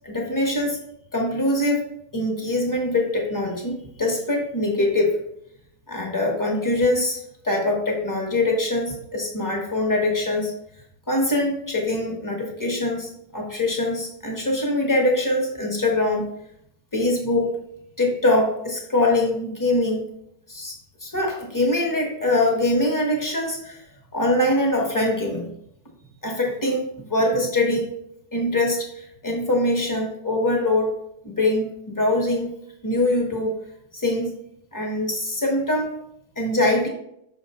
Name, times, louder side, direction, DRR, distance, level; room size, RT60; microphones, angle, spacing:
voice 1, 0.0-0.8 1.1-1.8 2.1-5.2 5.9-7.2 7.4-10.5 11.1-16.3 16.9-17.5 18.0-20.0 20.5-20.7 21.0-23.8 24.1-25.5 26.2-27.9 28.3-30.9 31.2-32.6 32.8-33.5 33.9-34.4 34.7-35.9 36.4-36.9, left 1 dB, 15° left, -1 dB, 1.0 m, -23 dB
6.3 x 5.1 x 3.1 m, 0.76 s
omnidirectional pair, 1.9 m